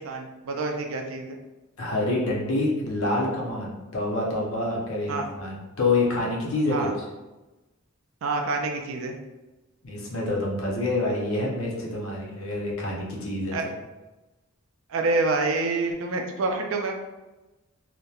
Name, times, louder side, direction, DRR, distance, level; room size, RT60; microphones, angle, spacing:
voice 1, 0.0-1.4 5.1-5.3 6.7-6.9 8.2-9.1 13.5-13.7 14.9-16.9, right 3 dB, 70° right, 3 dB, 0.4 m, -27 dB
voice 2, 1.8-6.9 9.8-13.7, left 2 dB, 75° left, -2 dB, 0.7 m, -27 dB
2.8 x 2.1 x 2.3 m, 1.1 s
head